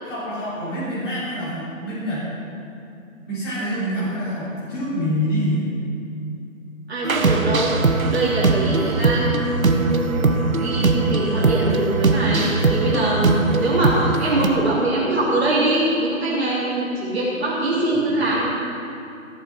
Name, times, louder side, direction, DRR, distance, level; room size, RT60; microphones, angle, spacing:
voice 1, 0.0-2.3 3.3-5.6 17.9-18.0, equal, 20° left, -11 dB, 3.6 m, -26 dB
voice 2, 6.9-7.8 8.1-18.5, right 1 dB, 50° right, -8 dB, 3.3 m, -23 dB
sound 1, 7.0-14.5, right 3 dB, 80° right, 1.3 m, -20 dB
16.5 x 7.2 x 6.2 m, 2.6 s
figure-of-eight pair, 165°, 42 cm